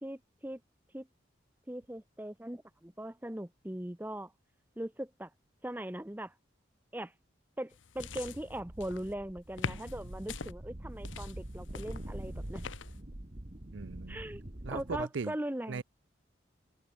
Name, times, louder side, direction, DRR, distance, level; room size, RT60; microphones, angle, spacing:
voice 1, 0.0-0.6 0.9-1.1 1.7-4.3 4.8-5.3 5.6-6.3 6.9-7.1 7.6-12.6 14.1-14.4 14.7-15.8, right 1 dB, 10° right, 0.8 m, -40 dB
sound 1, 7.7-9.1 9.6-10.5 11.0-13.0, left 5 dB, 85° left, 0.8 m, -43 dB
sound 2, 8.0-15.0, right 1 dB, 35° right, 1.4 m, -44 dB
voice 2, 13.7-14.2 14.6-15.3 15.7-15.8, right 5 dB, 75° right, 0.5 m, -38 dB
head